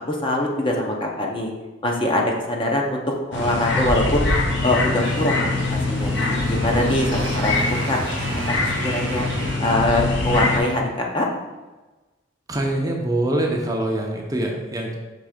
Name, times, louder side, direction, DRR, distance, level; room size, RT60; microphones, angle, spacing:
voice 1, 0.1-1.5 1.8-3.0 3.3-4.2 4.6-8.0 8.3-9.3 9.6-11.3, left 1 dB, 25° left, 0 dB, 0.7 m, -23 dB
sound 1, 3.3-10.6, left 2 dB, 70° left, 1.1 m, -23 dB
Motorcycle, 4.7-11.0, right 4 dB, 70° right, 0.7 m, -36 dB
voice 2, 12.5-14.9, right 1 dB, 20° right, 0 dB, 0.7 m, -24 dB
6.1 x 3.3 x 5.0 m, 1.2 s
head